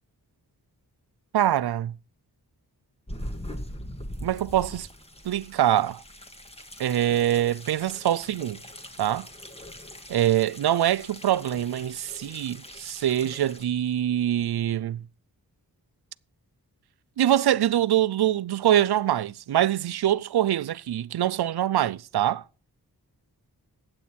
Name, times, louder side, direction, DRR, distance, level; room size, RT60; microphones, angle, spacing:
voice 1, 1.3-1.9 4.2-4.9 5.3-6.0 6.8-8.6 9.0-9.3 10.1-15.0 17.2-22.4, right 12 dB, 85° right, 0.5 m, -24 dB
sound 1, 3.1-13.6, equal, 15° left, 1.9 m, -42 dB
15.0 x 9.0 x 4.4 m
wide cardioid pair, 90°, 38 cm